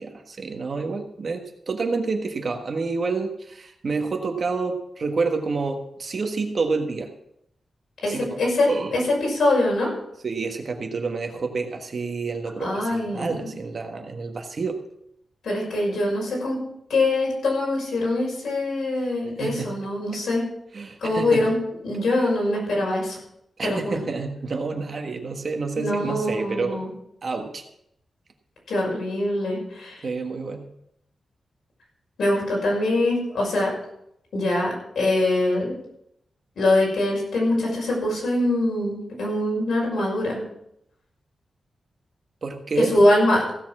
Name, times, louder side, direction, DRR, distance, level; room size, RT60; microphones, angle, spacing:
voice 1, 0.0-7.1 8.0-8.3 8.7-9.0 10.2-14.8 19.4-19.7 20.7-21.5 23.6-26.8 27.2-27.6 30.0-30.7 42.4-42.9, right 4 dB, 40° right, 4 dB, 1.4 m, -28 dB
voice 2, 8.0-9.9 12.6-13.5 15.4-16.6 16.9-20.4 21.0-21.5 21.8-23.2 23.6-24.0 25.8-26.9 28.7-30.0 32.2-33.7 34.3-35.8 36.6-40.4 42.8-43.4, left 1 dB, 85° left, -3 dB, 6.1 m, -23 dB
16.0 x 7.2 x 6.1 m, 0.77 s
wide cardioid pair, 180°, 0 cm